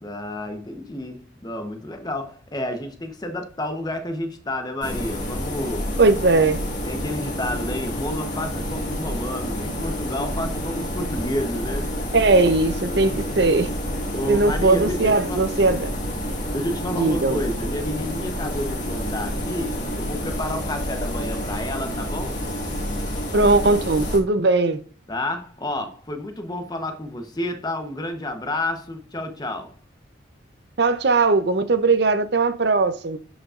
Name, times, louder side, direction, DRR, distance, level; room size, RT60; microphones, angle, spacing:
voice 1, 0.0-5.9 6.8-11.9 14.1-15.5 16.5-22.4 25.1-29.7, left 1 dB, 20° left, 0.9 m, -30 dB
sound 1, 4.8-24.2, equal, 40° left, 2.0 m, -29 dB
voice 2, 6.0-6.6 12.1-13.7 14.3-15.9 17.0-17.4 23.3-24.8 30.8-33.2, right 3 dB, 60° right, 0.6 m, -19 dB
11.5 x 5.1 x 2.5 m
head